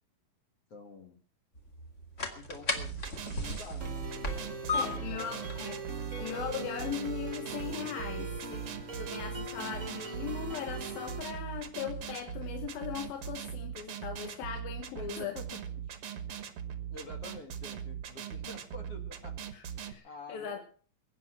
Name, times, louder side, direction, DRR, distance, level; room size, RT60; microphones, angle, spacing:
voice 1, 0.7-1.2 2.4-5.4 15.0-15.6 16.9-19.4 19.8-20.6, left 2 dB, 45° left, 5 dB, 2.6 m, -48 dB
sound 1, 1.5-13.3, left 2 dB, 25° left, 2.0 m, -41 dB
sound 2, 2.8-19.9, right 9 dB, 55° right, 1.6 m, -40 dB
sound 3, 3.8-11.2, right 2 dB, 35° right, 1.3 m, -41 dB
voice 2, 4.7-15.4 19.5-20.6, left 8 dB, 75° left, 5 dB, 3.2 m, -39 dB
22.0 x 9.5 x 6.1 m, 0.42 s
omnidirectional pair, 4.3 m